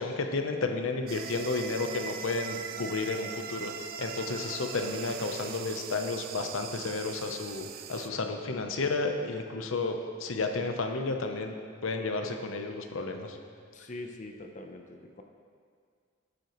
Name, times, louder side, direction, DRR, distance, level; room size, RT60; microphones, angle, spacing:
voice 1, 0.0-3.7 4.0-11.5 11.8-13.4, left 3 dB, 75° left, 4 dB, 0.8 m, -32 dB
sound 1, 1.1-8.1, right 8 dB, 45° right, 0.4 m, -41 dB
voice 2, 13.7-15.2, left 2 dB, 35° left, 4 dB, 0.6 m, -43 dB
11.5 x 7.8 x 3.1 m, 2.1 s
head